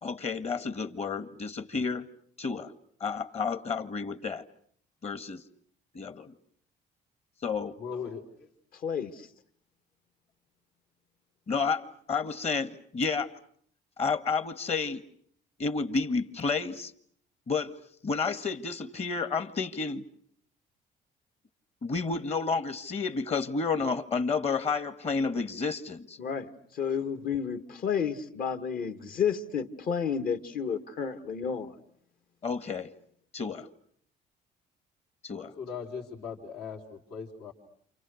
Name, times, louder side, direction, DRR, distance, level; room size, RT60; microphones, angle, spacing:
voice 1, 0.0-2.0 2.4-2.7 3.0-4.4 5.0-5.4 5.9-6.3 7.4-7.7 11.5-13.3 14.0-15.0 15.6-16.9 17.5-17.7 18.0-20.0 21.8-26.2 32.4-32.9 33.3-33.7 35.2-35.5, left 4 dB, 40° left, 11 dB, 1.7 m, -31 dB
voice 2, 7.8-8.5 35.4-37.5, left 6 dB, 75° left, 1 dB, 3.9 m, -39 dB
voice 3, 8.8-9.1 26.2-31.7, left 7 dB, 60° left, 8 dB, 2.2 m, -31 dB
29.0 x 28.5 x 6.5 m, 0.63 s
cardioid pair, 110°, 17 cm